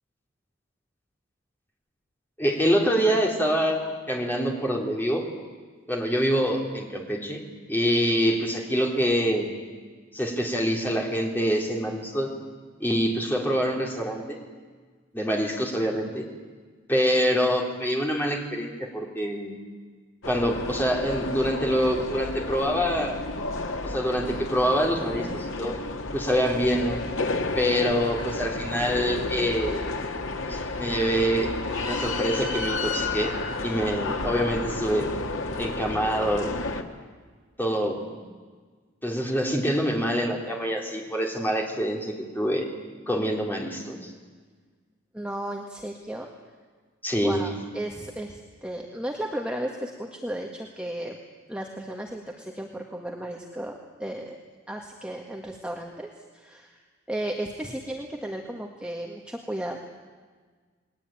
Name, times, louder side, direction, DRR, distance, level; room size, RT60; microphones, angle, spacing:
voice 1, 2.4-3.8 4.1-5.3 5.9-7.4 7.7-9.5 10.1-12.3 12.8-14.4 15.1-16.3 16.9-19.5 20.2-23.2 23.8-25.8 26.1-27.0 27.6-29.9 30.5-31.5 31.8-33.4 33.6-35.2 35.6-36.6 37.6-38.0 39.0-42.7 43.1-44.1 47.0-47.4, equal, 10° left, 0 dB, 3.7 m, -25 dB
sound 1, 20.2-36.8, left 2 dB, 85° left, 2.1 m, -31 dB
voice 2, 45.1-46.3 47.2-51.2 51.5-54.4 54.7-56.8 57.1-59.8, right 1 dB, 5° right, 0 dB, 1.7 m, -34 dB
29.5 x 21.0 x 9.1 m, 1.5 s
head